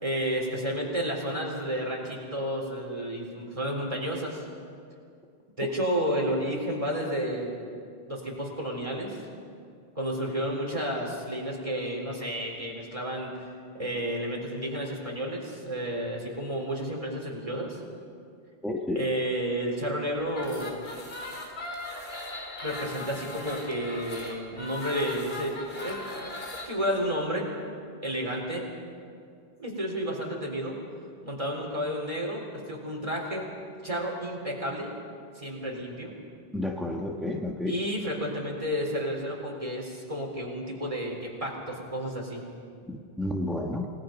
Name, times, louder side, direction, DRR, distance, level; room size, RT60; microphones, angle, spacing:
voice 1, 0.0-4.5 5.6-7.6 8.1-9.2 10.0-13.3 13.8-17.8 18.9-20.8 22.6-26.2 26.6-27.5 28.0-28.7 29.6-30.8 31.2-33.5 33.8-34.9 35.3-36.1 37.7-42.4, equal, 30° right, -1 dB, 4.2 m, -31 dB
voice 2, 18.6-19.1 36.5-37.8 42.9-43.9, left 1 dB, ahead, 0 dB, 1.2 m, -31 dB
sound 1, 20.3-26.7, left 2 dB, 65° left, 3.3 m, -39 dB
29.0 x 18.5 x 5.3 m, 2.3 s
omnidirectional pair, 1.1 m